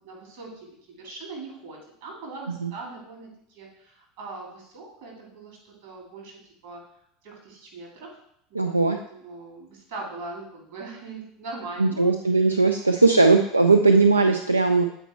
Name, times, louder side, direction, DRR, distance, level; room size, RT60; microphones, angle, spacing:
voice 1, 0.0-6.8 7.2-8.2 8.5-12.1 12.8-13.3, right 3 dB, 60° right, -2 dB, 2.8 m, -41 dB
voice 2, 8.6-9.0 11.8-14.8, right 3 dB, 85° right, 6 dB, 0.3 m, -19 dB
8.0 x 4.4 x 4.3 m, 0.72 s
figure-of-eight pair, 75°, 0 cm